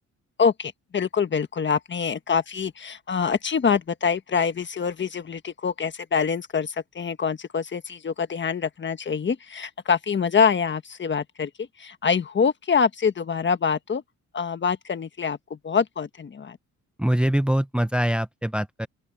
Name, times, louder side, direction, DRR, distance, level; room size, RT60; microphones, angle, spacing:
voice 1, 0.4-14.0 14.3-16.6, left 6 dB, 40° left, 1.5 m, -25 dB
voice 2, 17.0-18.9, right 1 dB, 5° right, 0.8 m, -23 dB
open air
cardioid pair, 90°, 30 cm